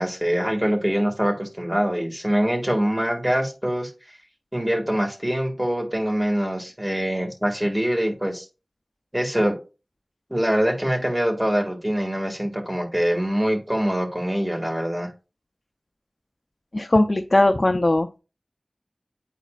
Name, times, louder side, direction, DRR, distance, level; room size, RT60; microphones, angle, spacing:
voice 1, 0.0-4.2 4.5-8.5 9.1-9.5 10.3-15.1, equal, 20° right, 2 dB, 1.9 m, -24 dB
voice 2, 16.7-18.2, left 1 dB, 45° left, 6 dB, 0.5 m, -19 dB
9.9 x 4.1 x 2.4 m, 0.32 s
wide cardioid pair, 50°, 0 cm